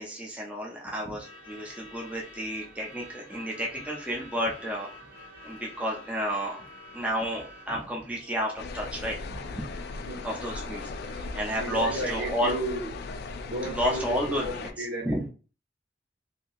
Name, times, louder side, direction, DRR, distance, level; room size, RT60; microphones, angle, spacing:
voice 1, 0.0-4.9 5.4-6.7 6.9-9.6 10.2-12.5 13.7-14.5 14.8-15.3, equal, 10° right, -3 dB, 0.6 m, -31 dB
Truck / Alarm, 1.0-12.9, left 1 dB, 60° right, 1.0 m, -50 dB
sound 1, 8.6-14.7, left 3 dB, 60° left, 0.3 m, -37 dB
voice 2, 11.6-12.9 13.5-15.3, right 1 dB, 85° right, -2 dB, 1.2 m, -34 dB
2.9 x 2.7 x 2.4 m, 0.36 s
head